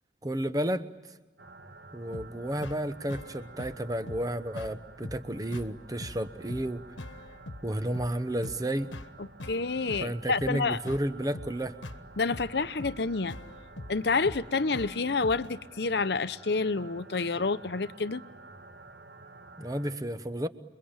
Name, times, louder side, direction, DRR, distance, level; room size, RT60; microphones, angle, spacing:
voice 1, 0.2-0.9 1.9-6.8 7.6-8.9 10.0-11.7 19.6-20.5, right 1 dB, 20° right, 0.9 m, -32 dB
sound 1, 1.4-19.9, right 3 dB, 70° right, 1.4 m, -51 dB
sound 2, 2.1-15.5, left 1 dB, 90° left, 1.3 m, -44 dB
voice 2, 9.2-10.8 12.2-13.4 13.9-18.2, left 4 dB, 60° left, 0.8 m, -29 dB
29.0 x 23.0 x 8.8 m
head